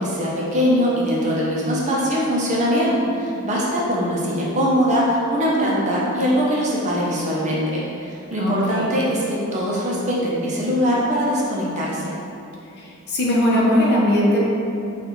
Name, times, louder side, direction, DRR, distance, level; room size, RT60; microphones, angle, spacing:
voice 1, 0.0-12.1, equal, 35° right, -5 dB, 0.5 m, -22 dB
voice 2, 8.4-8.9 12.8-14.4, left 1 dB, 50° left, -4 dB, 0.7 m, -19 dB
5.2 x 2.3 x 3.0 m, 2.8 s
head